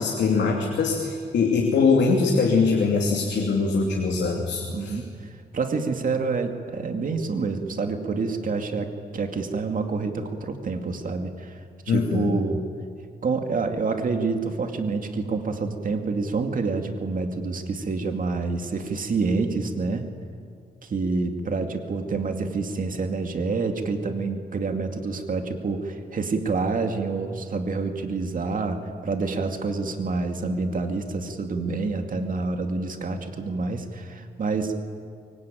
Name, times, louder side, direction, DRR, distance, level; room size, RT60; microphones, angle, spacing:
voice 1, 0.0-5.0 11.9-12.3, left 4 dB, 85° left, 0 dB, 3.1 m, -22 dB
voice 2, 4.6-5.1 5.5-11.6 11.9-12.6 13.2-20.0 20.8-34.7, right 4 dB, 50° right, 5 dB, 2.3 m, -27 dB
24.0 x 24.0 x 9.2 m, 2.2 s
wide cardioid pair, 125°, 18 cm